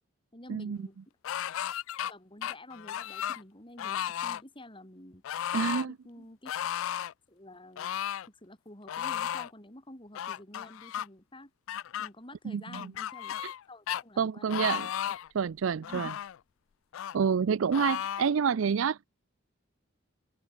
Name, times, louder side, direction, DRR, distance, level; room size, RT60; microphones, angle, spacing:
voice 1, 0.3-1.0 2.0-5.2 5.7-6.5 7.3-8.0 8.4-11.5 12.0-13.3 13.7-14.5 15.8-16.1, left 1 dB, 25° left, 6.3 m, -49 dB
sound 1, 1.2-2.1 2.4-3.4 3.8-4.4 5.2-5.9 6.5-7.1 7.8-8.3 8.9-9.5 10.1-11.1 11.7-12.1 12.7-13.6 13.9-14.0 14.5-15.3 15.8-16.4 16.9-17.2 17.7-18.3, left 10 dB, 70° left, 0.3 m, -34 dB
voice 2, 5.5-6.0 12.4-12.9 13.4-13.5 14.2-14.9 15.3-16.1 17.1-19.0, right 6 dB, 75° right, 0.4 m, -28 dB
open air
head